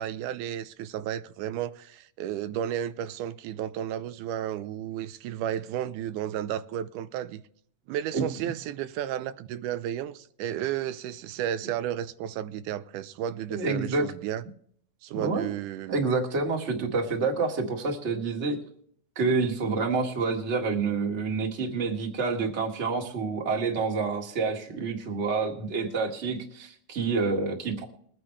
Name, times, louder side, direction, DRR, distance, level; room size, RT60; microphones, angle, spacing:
voice 1, 0.0-7.4 7.9-14.4 15.0-16.0, right 10 dB, 85° right, 2.2 m, -33 dB
voice 2, 13.5-14.0 15.2-15.5 15.9-18.6 19.1-27.9, right 4 dB, 30° right, 1.6 m, -28 dB
22.0 x 9.5 x 3.3 m
omnidirectional pair, 3.5 m